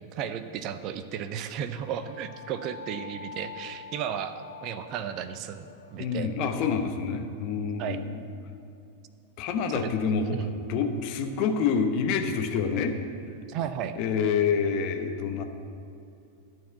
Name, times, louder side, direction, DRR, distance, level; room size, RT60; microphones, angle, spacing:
voice 1, 0.1-6.3 7.8-8.0 9.7-9.9 10.3-10.5 13.5-14.0, right 9 dB, 40° right, 11 dB, 0.5 m, -34 dB
sound 1, 1.7-6.8, left 6 dB, 70° left, 1.0 m, -46 dB
voice 2, 6.0-8.1 9.4-13.0 14.0-15.4, left 6 dB, 45° left, 6 dB, 0.9 m, -27 dB
12.5 x 4.7 x 8.4 m, 2.7 s
figure-of-eight pair, 90°, 0 cm